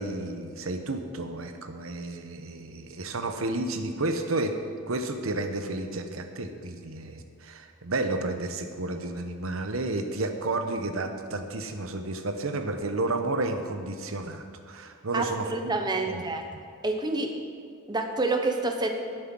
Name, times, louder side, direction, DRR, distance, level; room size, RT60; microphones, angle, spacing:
voice 1, 0.0-4.5 4.9-15.7 16.1-16.2, right 2 dB, 75° right, 6 dB, 1.0 m, -31 dB
voice 2, 15.1-16.4 16.8-17.3 17.9-18.9, right 2 dB, 20° right, 4 dB, 0.9 m, -28 dB
11.0 x 7.9 x 6.1 m, 2.2 s
head